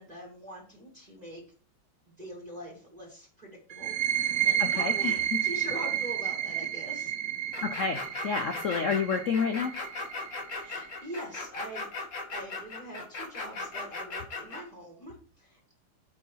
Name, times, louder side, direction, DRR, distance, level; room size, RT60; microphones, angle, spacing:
voice 1, 0.0-1.4 2.2-5.1 5.4-7.1 10.6-11.9 12.3-15.6, right 1 dB, 20° right, -4 dB, 3.0 m, -43 dB
sound 1, 3.7-11.1, right 10 dB, 60° right, 0.9 m, -31 dB
voice 2, 4.6-5.4 7.6-9.7, left 5 dB, 80° left, 6 dB, 0.7 m, -30 dB
sound 2, 7.5-14.6, left 3 dB, 40° left, 1.6 m, -38 dB
8.4 x 5.4 x 4.7 m, 0.41 s
omnidirectional pair, 2.3 m